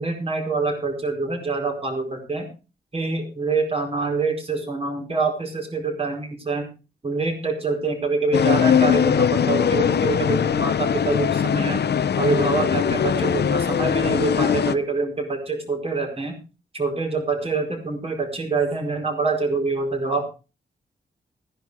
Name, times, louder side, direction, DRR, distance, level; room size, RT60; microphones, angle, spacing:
voice 1, 0.0-2.5 2.9-6.7 7.0-11.8 12.2-16.4 16.7-20.2, right 3 dB, 35° right, 3 dB, 4.7 m, -25 dB
sound 1, 8.3-14.7, left 8 dB, 70° left, 0.8 m, -21 dB
15.0 x 10.0 x 4.8 m, 0.32 s
wide cardioid pair, 140°, 18 cm